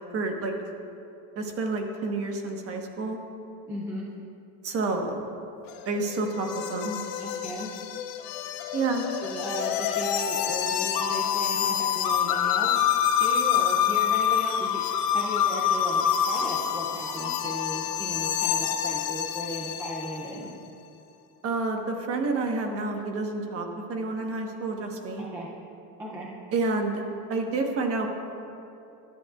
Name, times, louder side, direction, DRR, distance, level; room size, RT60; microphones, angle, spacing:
voice 1, 0.1-0.5 1.3-3.2 4.6-5.2 5.8-7.0 8.7-9.1 21.4-25.2 26.5-27.0 27.3-28.1, right 3 dB, 30° right, 3 dB, 1.2 m, -29 dB
voice 2, 3.7-4.1 7.2-7.7 9.2-20.5 25.2-25.5 26.0-26.3, right 1 dB, 5° right, -5 dB, 0.3 m, -36 dB
sound 1, 5.7-20.3, left 9 dB, 60° left, 0.9 m, -27 dB
21.5 x 11.0 x 2.4 m, 2.7 s
cardioid pair, 175°, 49 cm